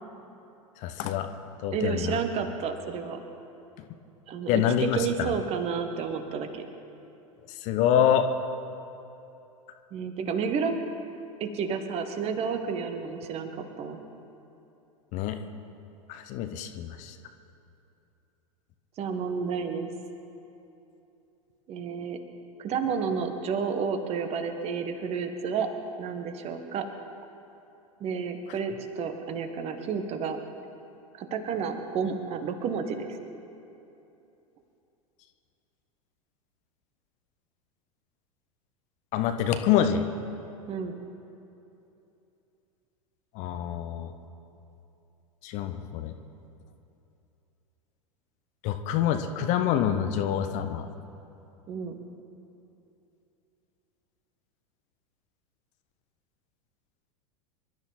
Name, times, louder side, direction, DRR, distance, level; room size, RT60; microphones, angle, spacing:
voice 1, 0.8-1.3 1.6-2.2 4.5-5.3 7.6-8.3 15.1-15.4 16.1-17.1 39.1-40.1 43.3-44.1 45.4-46.1 48.6-50.9, left 9 dB, 40° left, 8 dB, 1.1 m, -26 dB
voice 2, 1.7-3.2 4.3-6.6 9.9-10.7 11.4-14.0 19.0-19.9 21.7-22.2 22.6-25.7 26.0-26.8 28.0-30.4 31.1-33.2 40.7-40.9 51.7-52.0, right 6 dB, 35° right, 6 dB, 1.6 m, -31 dB
26.0 x 12.5 x 4.3 m, 2.8 s
figure-of-eight pair, 85°, 19 cm